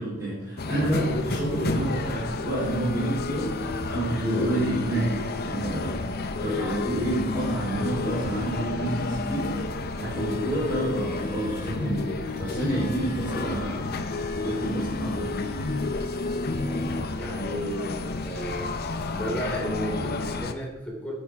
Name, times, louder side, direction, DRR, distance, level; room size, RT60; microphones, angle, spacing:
voice 1, 0.0-3.5 3.9-5.1 5.4-6.0 6.4-9.5 10.0-12.1 12.4-13.9 14.4-15.7, right 1 dB, 15° right, -11 dB, 3.4 m, -29 dB
sound 1, 0.6-20.5, left 3 dB, 45° left, 0.6 m, -30 dB
sound 2, 1.0-20.4, equal, 25° left, 3.8 m, -43 dB
voice 2, 17.2-18.8 19.1-21.1, equal, 5° left, -3 dB, 2.9 m, -33 dB
12.0 x 8.5 x 3.5 m, 0.98 s
head